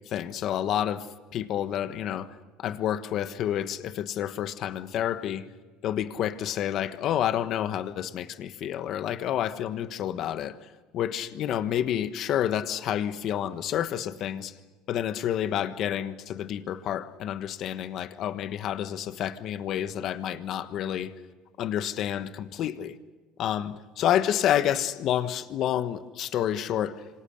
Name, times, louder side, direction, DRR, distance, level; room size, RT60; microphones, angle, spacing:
voice 1, 0.1-1.1 1.3-5.5 5.8-10.6 10.9-14.5 14.9-21.1 21.6-23.0 23.4-27.0, left 10 dB, 55° left, 11 dB, 1.4 m, -29 dB
26.5 x 25.5 x 6.6 m, 1.3 s
supercardioid pair, 115°, 0 cm